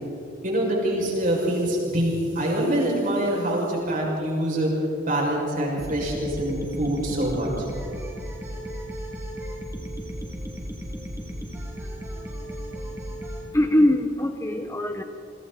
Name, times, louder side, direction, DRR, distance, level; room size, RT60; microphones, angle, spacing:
voice 1, 0.4-4.7 5.1-7.5, right 1 dB, 40° right, -3 dB, 6.6 m, -25 dB
sound 1, 5.8-13.5, equal, 15° right, 2.6 m, -35 dB
voice 2, 13.5-15.0, left 1 dB, 15° left, 5 dB, 0.8 m, -22 dB
29.5 x 24.5 x 4.3 m, 2.7 s
head